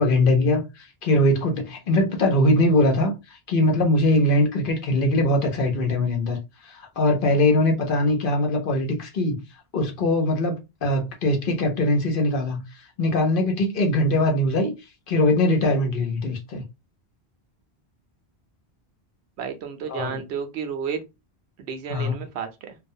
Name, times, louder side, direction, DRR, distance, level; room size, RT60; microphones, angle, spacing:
voice 1, 0.0-6.4 6.6-9.4 9.7-14.7 15.1-16.6 19.9-20.2 21.9-22.1, left 1 dB, 60° left, 0.8 m, -21 dB
voice 2, 19.4-21.0 21.6-22.8, right 6 dB, 85° right, 0.9 m, -32 dB
2.4 x 2.2 x 2.6 m
omnidirectional pair, 1.1 m